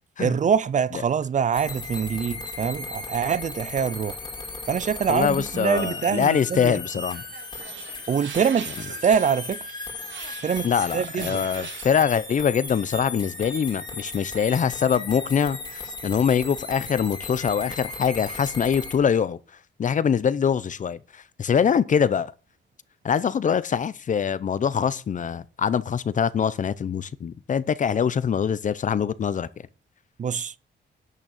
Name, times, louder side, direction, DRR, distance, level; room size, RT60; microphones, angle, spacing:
voice 1, 0.2-4.2 4.7-6.8 8.1-9.7 10.4-11.4 30.2-30.5, right 7 dB, 40° right, 0.5 m, -24 dB
sound 1, 1.5-18.9, left 3 dB, 25° left, 2.6 m, -36 dB
voice 2, 5.1-7.2 10.6-19.4 19.8-22.3 23.0-29.5, left 7 dB, 40° left, 0.7 m, -24 dB
sound 2, 7.1-12.1, right 8 dB, 80° right, 1.5 m, -42 dB
11.0 x 6.4 x 7.2 m
wide cardioid pair, 165°, 19 cm